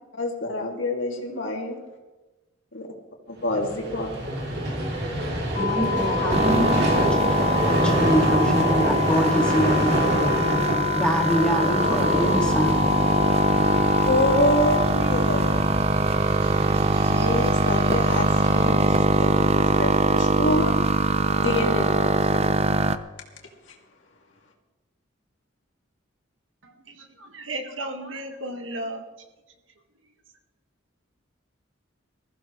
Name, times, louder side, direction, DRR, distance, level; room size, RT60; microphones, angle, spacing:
voice 1, 0.1-1.8 2.7-2.9 3.3-4.2 14.0-15.6 16.6-20.8 21.4-22.7, left 1 dB, 65° left, 0 dB, 2.5 m, -27 dB
Vehicle, 3.4-19.8, right 1 dB, 55° right, 3.1 m, -28 dB
sound 1, 5.5-14.9, left 8 dB, 45° left, 0.6 m, -28 dB
voice 2, 5.6-10.0 10.9-12.8, equal, 5° left, 0 dB, 2.0 m, -25 dB
sound 2, 6.3-23.0, right 3 dB, 30° right, 0.6 m, -22 dB
voice 3, 26.6-29.0, right 1 dB, 75° right, 4 dB, 1.9 m, -34 dB
21.0 x 15.0 x 3.2 m, 1.2 s
head